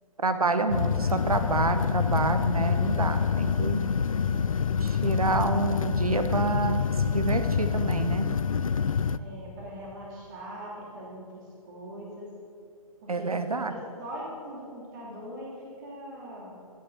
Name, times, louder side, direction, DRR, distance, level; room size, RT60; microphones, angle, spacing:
voice 1, 0.2-3.8 4.8-8.3 13.1-13.7, right 3 dB, 80° right, 9 dB, 0.8 m, -28 dB
sound 1, 0.7-9.2, left 6 dB, 65° left, 0.4 m, -26 dB
voice 2, 9.2-12.3 13.0-13.4 13.7-16.6, equal, 30° right, -3 dB, 2.8 m, -41 dB
15.0 x 6.1 x 6.2 m, 2.4 s
figure-of-eight pair, 135°, 19 cm